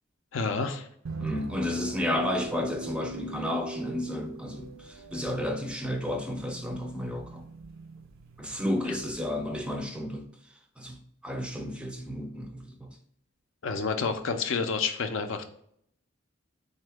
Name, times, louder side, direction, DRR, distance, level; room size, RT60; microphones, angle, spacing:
voice 1, 0.3-0.9 13.6-15.6, left 4 dB, 75° left, 0.5 m, -29 dB
sound 1, 1.1-9.8, right 3 dB, 85° right, 0.5 m, -43 dB
voice 2, 1.2-7.4 8.4-10.3 10.8-13.0, left 1 dB, 5° right, 0.4 m, -32 dB
3.7 x 2.7 x 3.3 m
head